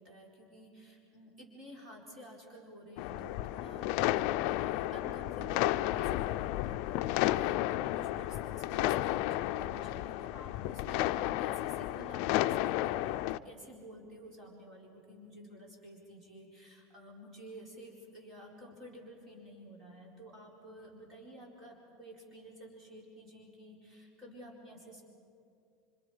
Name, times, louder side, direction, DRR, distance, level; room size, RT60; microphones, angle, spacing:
voice 1, 0.0-3.9 4.2-13.2 13.4-25.0, equal, 25° right, -2 dB, 4.5 m, -51 dB
sound 1, 3.0-13.4, left 15 dB, 60° left, 0.5 m, -32 dB
28.0 x 25.5 x 5.1 m, 2.4 s
supercardioid pair, 155°, 0 cm